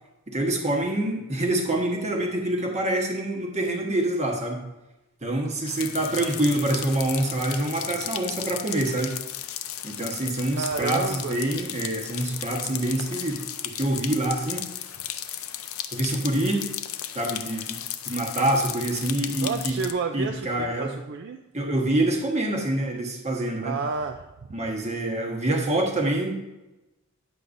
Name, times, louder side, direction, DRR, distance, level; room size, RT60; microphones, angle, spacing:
voice 1, 0.3-4.6 5.2-9.1 9.8-13.4 13.7-14.7 15.9-16.6 17.1-17.8 18.0-19.8 20.1-20.9 21.5-23.8 24.5-26.4, right 1 dB, 35° right, 1 dB, 1.2 m, -26 dB
sound 1, 5.7-19.9, left 11 dB, 85° left, 0.5 m, -35 dB
voice 2, 10.5-11.4 19.4-21.4 23.6-24.2, right 4 dB, 55° right, 5 dB, 0.4 m, -30 dB
9.6 x 7.5 x 2.6 m, 1.0 s
head